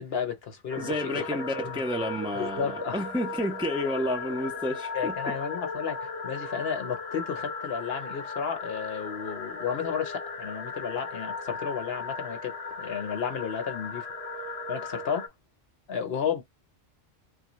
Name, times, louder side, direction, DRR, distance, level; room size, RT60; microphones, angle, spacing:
voice 1, 0.0-1.3 1.6-1.8 2.3-3.1 4.9-14.1 14.7-15.3 15.9-16.4, left 7 dB, 60° left, 1.0 m, -33 dB
sound 1, 0.7-15.3, left 3 dB, 40° left, 0.6 m, -37 dB
voice 2, 0.8-5.1, left 1 dB, 5° right, 0.5 m, -30 dB
3.5 x 2.2 x 3.0 m
omnidirectional pair, 1.2 m